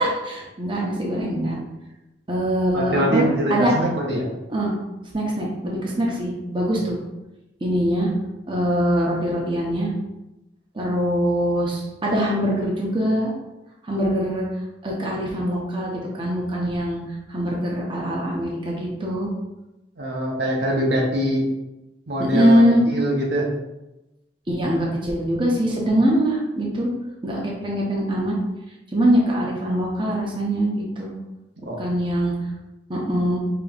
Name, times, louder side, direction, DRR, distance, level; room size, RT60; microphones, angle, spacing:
voice 1, 0.0-1.6 2.3-3.7 4.5-4.7 5.1-7.0 7.6-8.1 8.5-9.9 10.7-13.3 13.8-14.4 14.8-17.0 17.3-19.3 22.3-22.8 24.5-26.9 27.2-28.4 28.9-31.1 31.8-32.3 32.9-33.4, equal, 25° right, -3 dB, 0.7 m, -22 dB
voice 2, 2.7-4.3 20.0-21.5 22.1-23.5 31.7-31.8, right 1 dB, 65° right, -1 dB, 0.7 m, -23 dB
5.0 x 2.9 x 2.4 m, 0.99 s
head